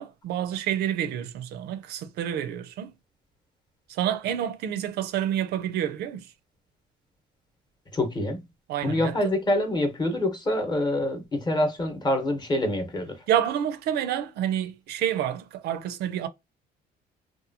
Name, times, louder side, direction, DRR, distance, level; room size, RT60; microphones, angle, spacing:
voice 1, 0.0-2.9 3.9-6.3 8.7-9.2 13.3-16.3, right 10 dB, 75° right, 0.4 m, -28 dB
voice 2, 7.9-8.4 8.8-13.2, left 1 dB, 25° left, 0.9 m, -26 dB
2.8 x 2.2 x 2.6 m
cardioid pair, 110°, 17 cm